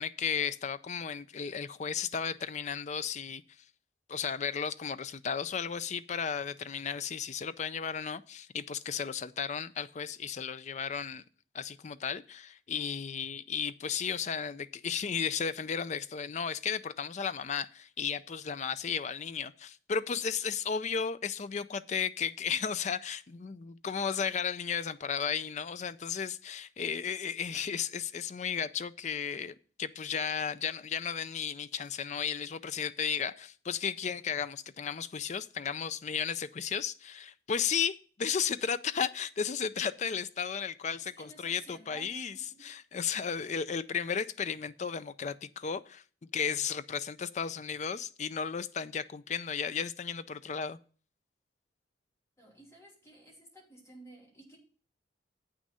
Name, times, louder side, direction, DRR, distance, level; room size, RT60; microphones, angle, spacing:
voice 1, 0.0-3.4 4.1-11.2 11.5-50.8, left 7 dB, 40° left, 0.4 m, -34 dB
voice 2, 41.0-42.6 52.4-54.6, right 1 dB, 15° left, 2.8 m, -53 dB
8.4 x 6.2 x 5.5 m
head